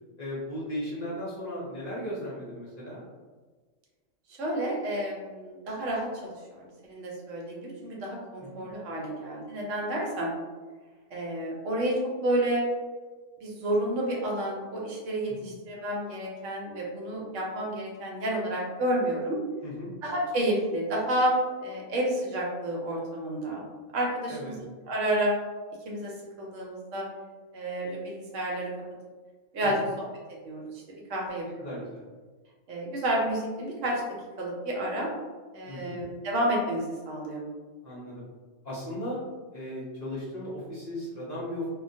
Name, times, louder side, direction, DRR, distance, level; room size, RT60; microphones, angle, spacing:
voice 1, 0.2-3.0 8.4-8.6 15.4-15.5 19.6-19.9 24.3-24.6 29.6-29.9 31.6-32.1 35.7-36.0 37.8-38.2 38.6-39.2 39.5-41.7, equal, 45° left, -9 dB, 0.6 m, -36 dB
voice 2, 4.3-10.3 11.1-12.7 13.4-19.4 20.0-21.4 21.6-23.6 23.9-25.3 25.9-27.1 27.5-28.7 29.5-30.0 30.4-31.7 32.7-34.0 34.4-35.1 35.5-37.5, right 1 dB, 75° right, -3 dB, 1.0 m, -30 dB
2.3 x 2.2 x 2.6 m, 1.4 s
omnidirectional pair, 1.3 m